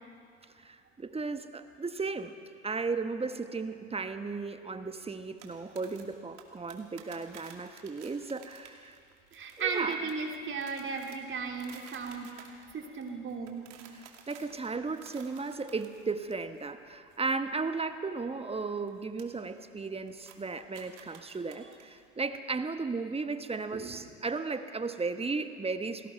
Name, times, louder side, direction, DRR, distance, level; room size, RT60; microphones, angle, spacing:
voice 1, 0.6-9.0 9.6-10.0 13.9-26.1, right 4 dB, 15° right, 9 dB, 1.3 m, -35 dB
sound 1, 5.4-16.7 16.9-17.2 17.4-19.2 19.6-19.8 20.1-22.1, right 8 dB, 75° right, 2.6 m, -54 dB
voice 2, 9.3-12.3 12.7-13.7 23.7-23.9, right 5 dB, 35° right, 1 dB, 3.5 m, -35 dB
29.0 x 19.5 x 4.6 m, 2.5 s
hypercardioid pair, 75°, 36 cm